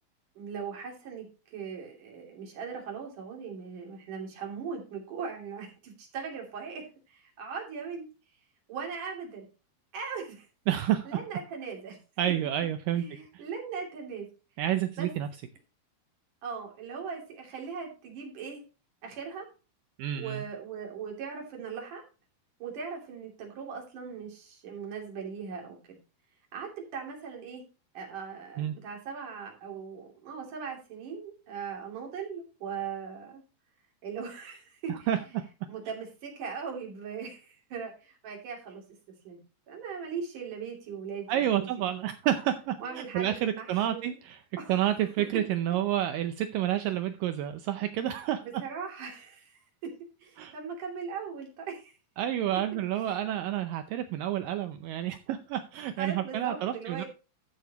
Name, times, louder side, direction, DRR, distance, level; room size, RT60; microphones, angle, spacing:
voice 1, 0.4-8.1 8.7-9.5 9.9-10.5 11.0-12.0 12.9-14.3 15.0-15.1 16.4-18.6 19.0-19.5 20.1-22.0 22.6-26.0 26.5-27.6 27.9-33.4 34.0-35.1 35.7-38.8 39.2-39.4 39.7-41.9 42.8-44.2 44.6-44.8 48.4-49.9 50.2-51.9 53.1-53.2 56.0-57.1, right 6 dB, 55° right, 0 dB, 4.2 m, -39 dB
voice 2, 10.7-11.1 12.2-13.0 13.3-13.4 14.6-15.3 20.0-20.4 28.6-28.8 34.9-35.2 41.3-44.4 44.7-48.4 50.4-50.5 52.2-57.0, right 11 dB, 80° right, 9 dB, 2.0 m, -29 dB
13.5 x 7.0 x 2.9 m, 0.32 s
omnidirectional pair, 4.5 m